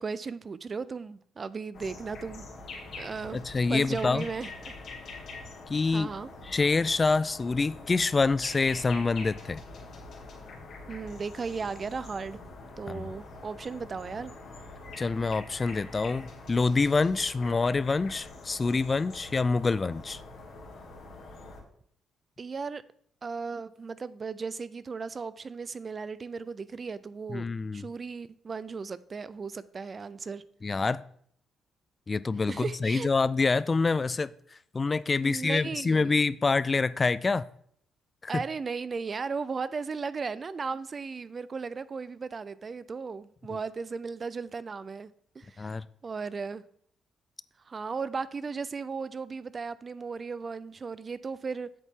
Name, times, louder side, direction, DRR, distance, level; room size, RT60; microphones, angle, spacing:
voice 1, 0.0-2.5 3.0-3.4 3.7-4.7 5.9-6.3 10.9-12.4 12.8-14.3 22.4-22.8 23.2-30.4 32.5-33.1 35.2-36.2 38.3-45.1 45.3-45.8 46.0-46.6 47.7-51.7, right 5 dB, 35° right, 0.4 m, -36 dB
sound 1, 1.7-21.6, left 3 dB, 65° left, 2.2 m, -45 dB
voice 2, 3.3-4.2 5.7-6.1 6.4-9.6 12.9-13.1 15.0-20.2 27.3-27.9 30.6-31.0 32.1-34.3 34.7-37.5 38.3-38.4 45.6-45.8, left 4 dB, 30° left, 0.3 m, -26 dB
8.0 x 7.3 x 3.7 m
cardioid pair, 90°, 0 cm